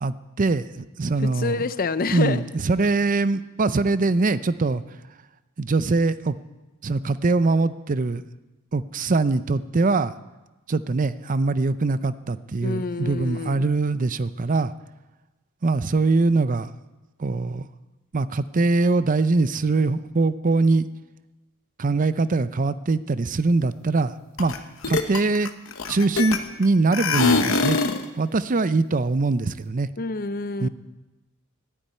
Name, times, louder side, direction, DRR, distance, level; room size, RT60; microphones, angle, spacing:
voice 1, 0.0-1.6 2.1-4.8 5.6-6.3 6.8-8.2 8.7-10.1 10.7-14.7 15.6-16.7 17.2-17.7 18.1-20.9 21.8-24.5 24.9-25.5 25.9-27.8 28.2-29.9 30.6-30.7, right 3 dB, 40° right, 14 dB, 0.5 m, -22 dB
voice 2, 1.2-2.4 12.6-13.6 30.0-30.7, left 4 dB, 40° left, 13 dB, 0.6 m, -27 dB
sound 1, 24.4-24.6 24.8-26.6 26.9-28.0, left 4 dB, 65° left, 1.1 m, -22 dB
12.0 x 9.9 x 9.4 m, 1.1 s
head